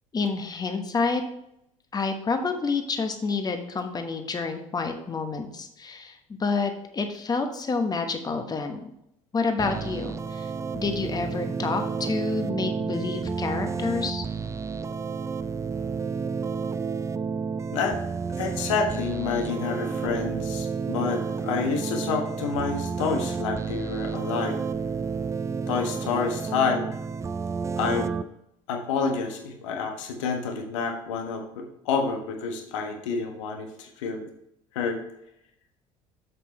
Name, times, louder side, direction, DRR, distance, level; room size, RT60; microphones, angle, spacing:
voice 1, 0.1-1.2 1.9-8.9 9.3-14.2, left 4 dB, 25° left, 6 dB, 1.1 m, -29 dB
sound 1, 9.6-28.2, right 5 dB, 15° right, 0.4 m, -31 dB
voice 2, 18.4-24.6 25.7-26.9 27.8-28.1 28.7-34.3 34.7-35.0, left 5 dB, 65° left, 4 dB, 1.4 m, -28 dB
7.8 x 7.5 x 3.2 m, 0.78 s
figure-of-eight pair, 55°, 17 cm